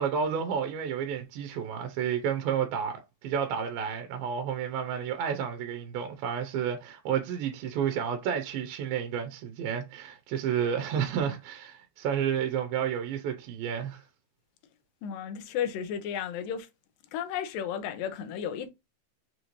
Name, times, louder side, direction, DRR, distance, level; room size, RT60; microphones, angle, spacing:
voice 1, 0.0-14.0, right 8 dB, 80° right, 2.6 m, -31 dB
voice 2, 15.0-16.7 17.1-18.7, left 8 dB, 80° left, 2.3 m, -33 dB
6.4 x 3.1 x 2.6 m
omnidirectional pair, 4.2 m